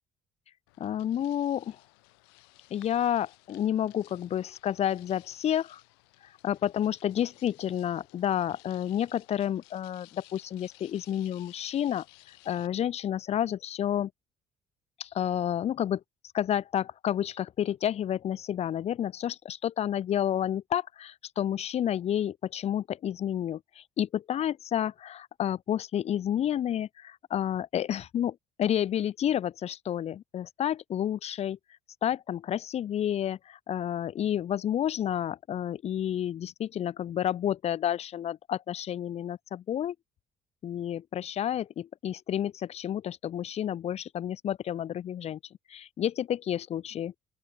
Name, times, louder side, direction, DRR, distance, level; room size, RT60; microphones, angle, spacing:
sound 1, 0.7-12.7, left 28 dB, 80° left, 6.3 m, -57 dB
voice 1, 0.8-1.8 2.7-5.8 6.4-12.0 12.4-14.1 15.0-16.0 16.3-31.6 32.0-39.9 40.6-45.4 45.7-47.1, left 10 dB, 55° left, 1.7 m, -30 dB
open air
hypercardioid pair, 50°, 13 cm